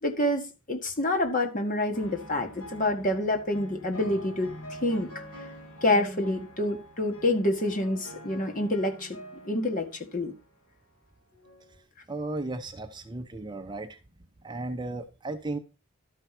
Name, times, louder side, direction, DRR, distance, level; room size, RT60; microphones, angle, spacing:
voice 1, 0.0-4.5 4.8-5.1 5.8-9.1 9.4-9.9 10.1-10.3, left 1 dB, 40° left, 1.7 m, -27 dB
sound 1, 1.9-10.5 11.3-11.8, equal, 80° left, 6.2 m, -46 dB
voice 2, 12.1-14.0 14.4-15.6, right 2 dB, 20° right, 0.7 m, -35 dB
12.5 x 4.7 x 5.9 m
head